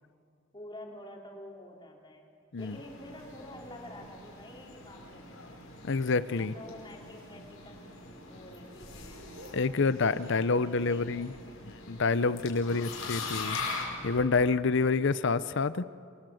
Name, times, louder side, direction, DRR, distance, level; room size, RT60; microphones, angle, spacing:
voice 1, 0.5-2.3 2.6-5.6 6.4-9.3 10.2-11.7 12.6-13.0, left 1 dB, 25° left, 0 dB, 3.9 m, -48 dB
sound 1, 2.6-14.2, left 4 dB, 75° left, 5.4 m, -42 dB
sound 2, 2.8-11.1, right 1 dB, 90° right, 7.1 m, -57 dB
voice 2, 5.8-6.5 9.5-11.3 11.9-13.6 14.0-15.9, left 4 dB, 60° left, 15 dB, 0.7 m, -27 dB
28.0 x 23.0 x 7.9 m, 2.4 s
head